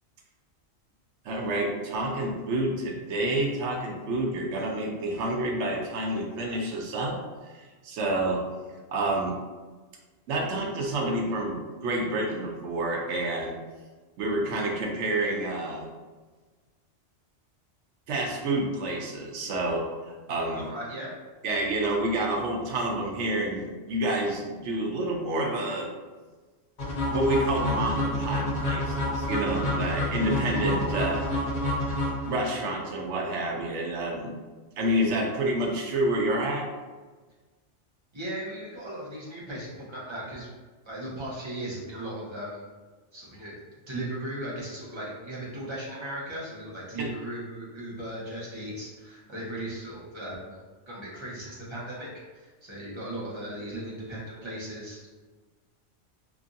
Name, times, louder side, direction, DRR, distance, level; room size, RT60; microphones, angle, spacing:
voice 1, 1.2-7.2 7.4-8.4 8.9-9.4 10.3-13.5 14.2-15.9 18.1-20.7 21.4-25.9 27.1-31.3 32.3-34.4 34.8-36.7 47.0-47.1, right 1 dB, 80° right, 0 dB, 0.9 m, -28 dB
voice 2, 20.5-21.1 38.1-40.5 40.8-42.6 43.1-50.6 50.9-55.1, right 1 dB, 25° right, -6 dB, 0.8 m, -37 dB
sound 1, 26.8-32.7, left 1 dB, 50° left, 0.7 m, -28 dB
2.9 x 2.5 x 2.5 m, 1.3 s
omnidirectional pair, 1.2 m